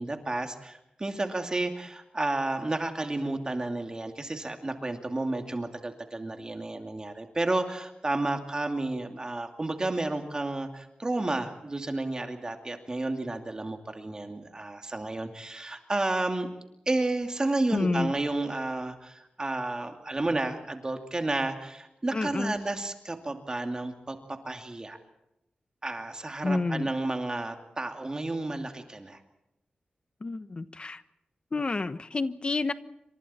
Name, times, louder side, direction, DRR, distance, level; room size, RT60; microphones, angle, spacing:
voice 1, 0.0-16.5 16.9-25.0 25.8-29.2, right 2 dB, 25° right, 5 dB, 2.6 m, -31 dB
voice 2, 17.7-18.1 22.1-22.5 26.4-26.9 30.2-31.0 31.5-32.7, left 3 dB, 35° left, 12 dB, 1.1 m, -29 dB
28.5 x 25.0 x 4.4 m, 0.85 s
wide cardioid pair, 125°, 3 cm